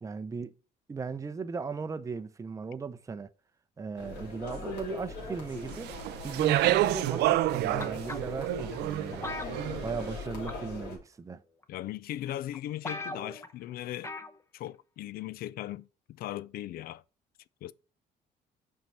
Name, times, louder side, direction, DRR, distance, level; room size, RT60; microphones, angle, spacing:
voice 1, 0.0-0.5 0.9-3.3 3.8-5.9 6.2-9.3 9.8-11.4, right 5 dB, 20° right, 0.5 m, -37 dB
sound 1, 4.0-11.0, left 3 dB, 80° left, 3.0 m, -41 dB
Speech, 5.7-10.0, right 15 dB, 80° right, 0.4 m, -28 dB
sound 2, 7.8-8.5 9.2-10.2 10.5-10.8 11.6-11.7 12.3-12.4 12.5-12.6 12.8-13.5 14.0-14.4 14.7-14.8, left 2 dB, 15° left, 0.8 m, -39 dB
voice 2, 11.7-14.1 14.5-17.0 17.6-17.7, left 13 dB, 65° left, 0.4 m, -38 dB
5.9 x 4.5 x 5.4 m
cardioid pair, 110°, 17 cm